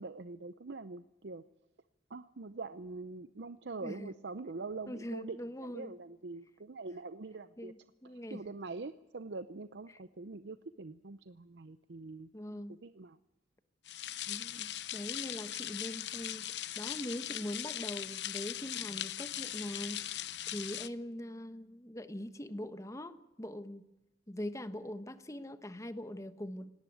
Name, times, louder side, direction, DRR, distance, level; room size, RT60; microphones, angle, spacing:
voice 1, 0.0-1.4 2.1-7.7 8.0-12.3 12.7-13.2, right 3 dB, 80° right, 12 dB, 0.7 m, -44 dB
voice 2, 4.9-5.9 7.6-8.4 12.3-12.8 14.3-20.1 20.5-23.8 24.3-26.7, left 1 dB, 20° left, 11 dB, 1.2 m, -42 dB
sound 1, 13.9-20.9, left 12 dB, 80° left, 0.8 m, -40 dB
18.5 x 18.0 x 9.2 m, 0.92 s
head